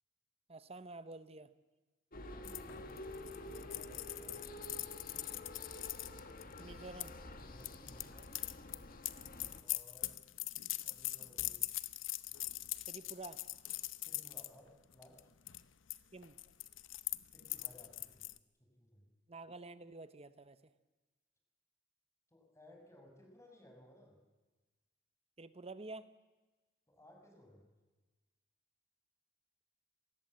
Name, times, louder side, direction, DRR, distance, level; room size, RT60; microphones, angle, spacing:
voice 1, 0.5-1.5 6.6-7.1 12.9-13.4 16.1-16.3 19.3-20.7 25.4-26.1, right 3 dB, 30° right, 13 dB, 0.9 m, -49 dB
sound 1, 2.1-9.6, left 1 dB, 45° left, 2.0 m, -49 dB
voice 2, 2.1-4.8 7.3-8.4 9.6-10.2 10.8-11.6 14.0-15.3 17.3-18.3 18.6-19.1 22.3-24.2 26.9-27.6, left 1 dB, 15° left, 3 dB, 5.8 m, -60 dB
sound 2, 2.4-7.1 7.6-14.5 14.9-15.2 15.5-18.4, left 16 dB, 70° left, 0.8 m, -42 dB
26.0 x 19.5 x 7.6 m, 1.2 s
head